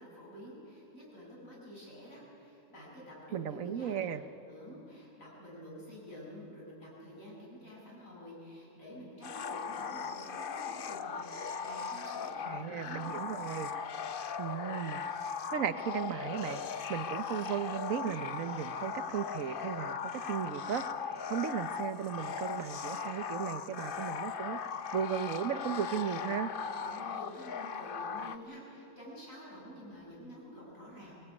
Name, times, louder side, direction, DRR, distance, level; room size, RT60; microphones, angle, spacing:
voice 1, 0.0-4.1 4.5-13.1 26.8-31.1, equal, 75° left, -5 dB, 7.9 m, -49 dB
voice 2, 3.3-4.2 12.5-13.7 14.4-15.0 15.5-16.6 16.9-20.8 21.3-24.6 24.9-26.5, right 8 dB, 75° right, 11 dB, 1.3 m, -35 dB
sound 1, 9.2-28.4, left 6 dB, 50° left, 0.8 m, -38 dB
23.0 x 19.5 x 9.7 m, 2.9 s
omnidirectional pair, 1.4 m